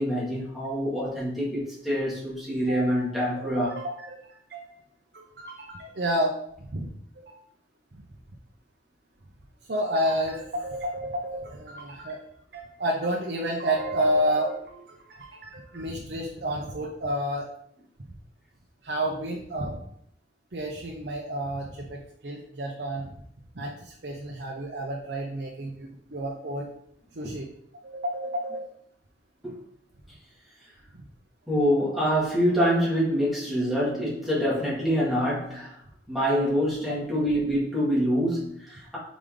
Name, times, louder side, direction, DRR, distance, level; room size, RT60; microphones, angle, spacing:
voice 1, 0.0-3.8 27.2-27.3 29.4-29.5 31.5-35.7 36.1-39.0, equal, ahead, -8 dB, 2.2 m, -25 dB
voice 2, 2.7-3.0 3.4-4.7 5.1-6.4 6.7-6.9 7.2-7.4 7.9-8.0 9.7-12.2 12.5-17.5 18.8-19.8 20.5-23.1 23.5-26.7 27.1-27.5 27.8-28.7 36.4-36.5, right 1 dB, 65° right, -1 dB, 0.8 m, -30 dB
5.1 x 5.0 x 3.8 m, 0.71 s
head